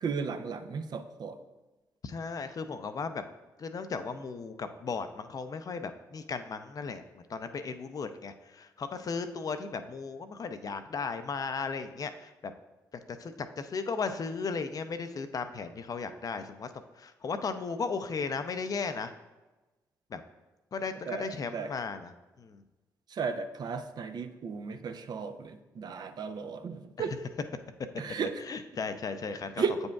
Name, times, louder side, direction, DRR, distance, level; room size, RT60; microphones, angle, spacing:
voice 1, 0.0-1.4 21.1-21.7 23.1-27.2 28.0-28.4 29.6-29.8, right 5 dB, 55° right, 8 dB, 0.5 m, -35 dB
voice 2, 2.0-3.2 3.6-12.3 13.2-16.7 17.0-19.1 20.1-20.2 20.7-22.1 22.4-22.6 28.5-29.6, left 5 dB, 50° left, 9 dB, 0.5 m, -36 dB
8.2 x 5.2 x 2.3 m, 1.1 s
hypercardioid pair, 45°, 8 cm